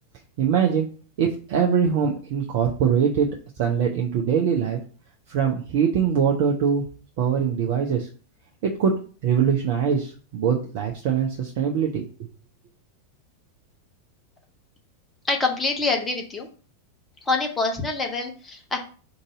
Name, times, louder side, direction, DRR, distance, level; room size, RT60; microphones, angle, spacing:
voice 1, 0.4-0.9 1.2-4.8 5.3-6.8 7.2-8.1 8.6-12.3, right 7 dB, 50° right, 1 dB, 0.6 m, -23 dB
voice 2, 15.3-16.5 17.3-18.8, left 3 dB, 15° left, 2 dB, 0.9 m, -25 dB
3.9 x 2.6 x 4.7 m, 0.40 s
figure-of-eight pair, 90°, 0 cm